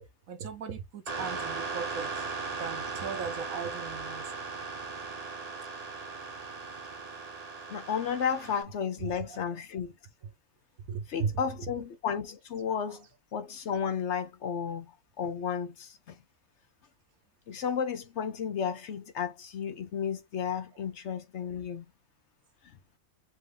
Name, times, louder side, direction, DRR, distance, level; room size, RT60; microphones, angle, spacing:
voice 1, 0.3-2.3 2.6-4.3 9.0-9.4 10.9-11.3, right 6 dB, 75° right, 1.3 m, -37 dB
sound 1, 1.1-8.6, right 4 dB, 35° right, 0.9 m, -38 dB
voice 2, 7.7-9.9 11.1-16.2 17.5-21.8, left 7 dB, 60° left, 0.9 m, -33 dB
4.5 x 2.6 x 3.4 m
omnidirectional pair, 1.4 m